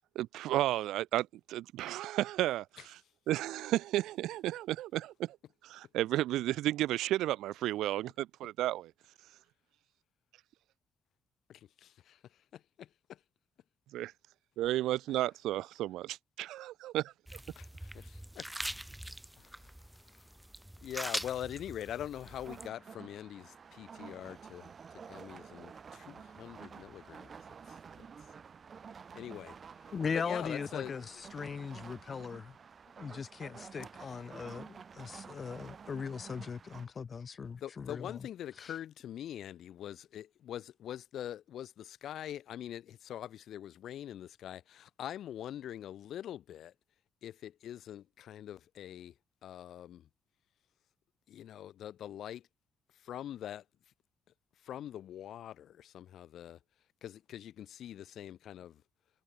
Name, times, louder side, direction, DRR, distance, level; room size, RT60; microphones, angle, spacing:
voice 1, 0.1-3.0 3.3-5.4 5.6-8.9 13.9-14.1 14.6-17.1, right 14 dB, 90° right, 0.8 m, -33 dB
voice 2, 11.5-13.2 15.1-15.2 17.5-18.5 19.4-20.3 20.8-25.7 26.1-27.3 27.7-27.8 29.1-31.2 34.0-34.1 37.6-46.7 47.2-49.1 49.4-50.1 51.3-52.5 52.9-53.6 54.6-56.6 57.0-58.8, left 11 dB, 70° left, 3.1 m, -44 dB
sound 1, 17.3-22.7, right 1 dB, 5° right, 0.8 m, -43 dB
sound 2, 22.1-36.9, right 6 dB, 45° right, 3.6 m, -51 dB
voice 3, 29.9-31.0 31.3-32.6 33.0-38.2 38.6-38.7, left 6 dB, 45° left, 0.9 m, -39 dB
cardioid pair, 90°, 0 cm